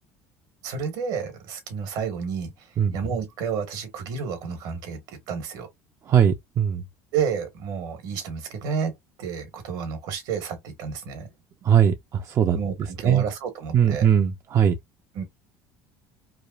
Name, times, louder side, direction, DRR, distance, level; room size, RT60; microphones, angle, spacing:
voice 1, 0.6-2.5 2.9-5.7 7.1-8.9 9.2-11.3 12.5-14.1 15.1-15.2, right 6 dB, 70° right, 1.1 m, -30 dB
voice 2, 6.1-6.8 11.6-12.6 13.0-13.2 13.7-14.8, right 8 dB, 40° right, 0.4 m, -20 dB
3.1 x 2.2 x 2.3 m
supercardioid pair, 90°, 8 cm